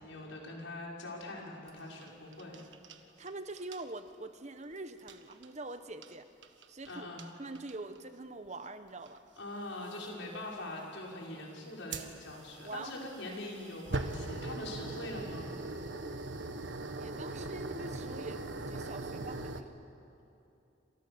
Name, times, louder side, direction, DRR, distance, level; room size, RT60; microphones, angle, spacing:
voice 1, 0.0-2.6 6.8-7.2 9.4-15.5, left 2 dB, 85° left, -2 dB, 5.8 m, -43 dB
sound 1, 1.7-3.3 3.6-3.8 5.0-5.5 6.0-6.1 6.4-6.9 7.2-7.3 7.5-8.0 9.1-9.2 9.9-10.1 11.9-19.6, right 2 dB, 75° right, 1.5 m, -40 dB
voice 2, 3.2-6.3 6.7-7.1 7.4-9.2 12.6-12.9 13.3-13.4 17.0-19.7, right 2 dB, 35° right, 9 dB, 1.1 m, -44 dB
29.0 x 27.0 x 7.1 m, 2.7 s
head